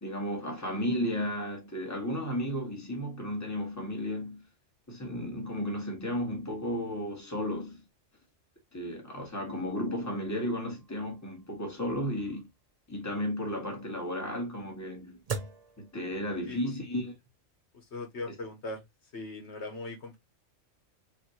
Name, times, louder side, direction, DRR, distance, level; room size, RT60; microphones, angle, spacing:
voice 1, 0.0-4.4 4.9-7.8 8.7-12.5 12.9-15.2 15.8-17.1, equal, 15° left, 1.5 m, -34 dB
sound 1, 10.0-16.7, right 5 dB, 40° right, 0.7 m, -44 dB
voice 2, 17.7-18.8 19.1-20.2, left 2 dB, 65° left, 1.5 m, -39 dB
5.5 x 2.7 x 2.9 m
omnidirectional pair, 1.2 m